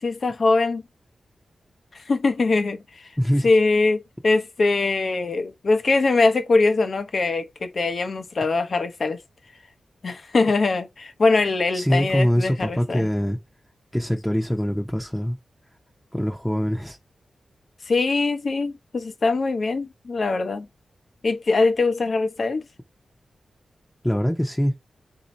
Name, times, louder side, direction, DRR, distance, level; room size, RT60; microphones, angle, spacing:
voice 1, 0.0-0.8 1.9-3.1 3.4-9.2 10.0-13.1 17.9-20.7 21.2-22.7, left 3 dB, 50° left, 0.7 m, -22 dB
voice 2, 3.2-3.5 11.7-13.4 13.9-15.4 16.1-17.0 24.0-24.7, equal, 5° left, 0.8 m, -23 dB
4.1 x 2.7 x 4.2 m
wide cardioid pair, 110°, 0 cm